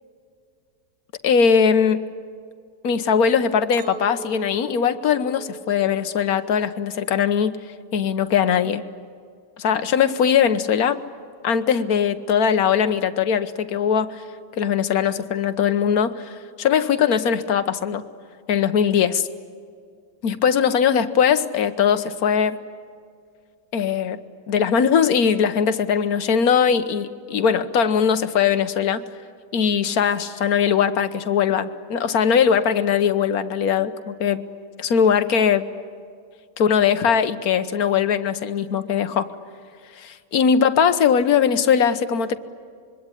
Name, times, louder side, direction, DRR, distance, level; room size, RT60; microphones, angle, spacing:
voice 1, 1.2-2.1 2.8-7.6 7.9-8.8 9.6-11.0 11.4-14.2 14.6-18.0 18.5-19.3 20.2-22.6 23.7-29.0 29.5-34.4 34.8-35.6 36.6-39.3 40.0-42.4, left 7 dB, 60° left, 10 dB, 1.5 m, -20 dB
Chink clink, 3.7-8.1 8.5-9.0, right 6 dB, 70° right, 1.8 m, -42 dB
26.0 x 23.0 x 10.0 m, 2.2 s
omnidirectional pair, 1.8 m